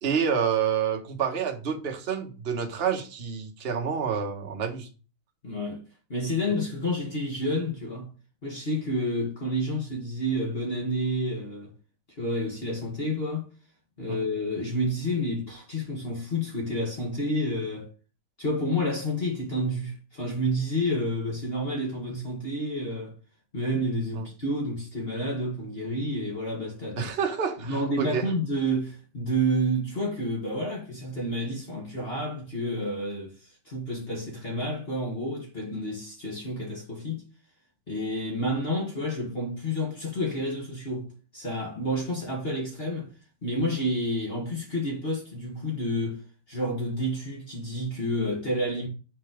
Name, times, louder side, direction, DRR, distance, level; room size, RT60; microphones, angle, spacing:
voice 1, 0.0-4.9 14.1-14.2 24.2-24.3 26.9-28.3, right 7 dB, 40° right, 1.0 m, -28 dB
voice 2, 5.4-5.8 6.1-8.1 8.4-11.7 12.2-13.5 14.0-17.9 18.4-23.1 23.5-27.1 27.6-37.2 37.9-43.1 43.4-46.2 46.5-48.9, equal, 30° left, 1.7 m, -29 dB
5.4 x 4.4 x 5.0 m
omnidirectional pair, 2.3 m